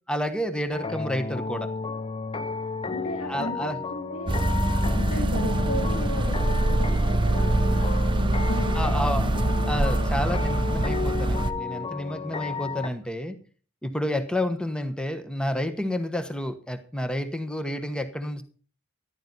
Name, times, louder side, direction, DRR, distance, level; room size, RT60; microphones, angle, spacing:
voice 1, 0.1-1.7 3.2-3.8 8.7-9.3 9.7-13.4 13.8-18.4, left 1 dB, 5° left, 9 dB, 1.1 m, -30 dB
sound 1, 0.7-12.9, left 4 dB, 25° left, 0.7 m, -32 dB
voice 2, 2.9-4.3 4.8-8.7 9.2-9.3, equal, 75° left, 0 dB, 3.1 m, -35 dB
sound 2, 4.3-11.5, right 1 dB, 20° right, 0.8 m, -24 dB
14.0 x 12.0 x 4.1 m, 0.40 s
head